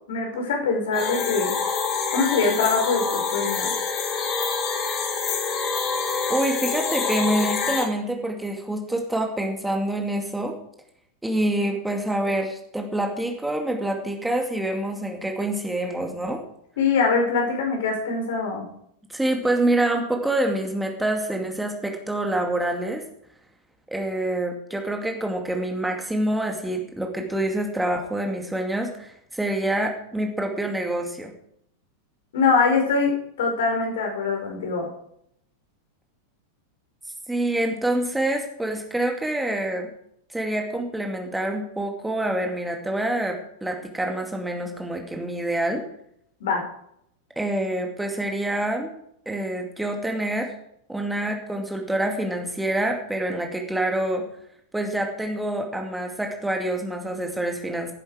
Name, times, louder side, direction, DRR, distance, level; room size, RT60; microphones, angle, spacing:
voice 1, 0.1-1.5 2.1-3.7 16.8-18.7 32.3-34.9 46.4-46.7, left 4 dB, 60° left, 2 dB, 5.1 m, -23 dB
sound 1, 0.9-7.8, left 5 dB, 35° left, 3.3 m, -26 dB
voice 2, 6.3-10.6 11.2-16.4 19.1-23.0 23.9-31.3 37.3-39.9 40.3-45.8 47.4-48.9 49.3-50.5 50.9-54.3 54.7-57.9, right 1 dB, 5° right, 2 dB, 2.4 m, -26 dB
17.5 x 10.5 x 5.0 m, 0.72 s
figure-of-eight pair, 90°, 0 cm